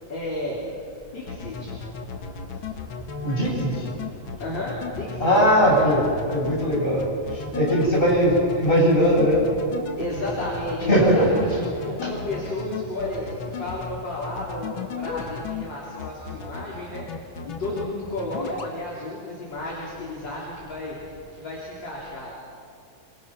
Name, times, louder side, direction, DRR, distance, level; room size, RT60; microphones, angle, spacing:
voice 1, 0.1-0.6 1.1-1.7 4.4-5.3 5.6-5.9 10.0-17.1 17.4-22.3, left 1 dB, 30° left, -5 dB, 4.1 m, -32 dB
sound 1, 1.3-15.6 16.0-16.6 16.9-17.9 18.2-18.7, left 5 dB, 45° left, 1.8 m, -34 dB
voice 2, 3.2-3.7 5.2-7.0 7.3-9.5 10.8-11.7 12.0-12.2, equal, 15° left, -4 dB, 7.4 m, -20 dB
26.0 x 24.0 x 6.1 m, 2.3 s
omnidirectional pair, 4.2 m